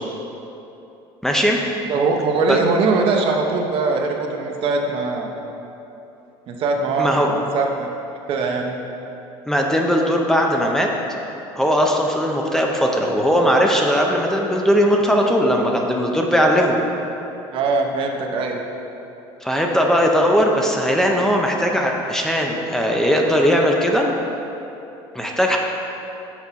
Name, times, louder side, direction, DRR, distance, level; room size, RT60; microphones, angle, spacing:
voice 1, 1.2-1.6 2.5-2.6 7.0-7.3 9.5-10.9 11.6-16.8 19.4-24.1 25.1-25.6, equal, 5° left, 0 dB, 0.6 m, -18 dB
voice 2, 1.9-5.3 6.5-7.9 8.3-8.8 17.5-18.6, right 3 dB, 55° right, 2 dB, 0.8 m, -21 dB
6.1 x 4.3 x 5.7 m, 2.9 s
cardioid pair, 115°, 11 cm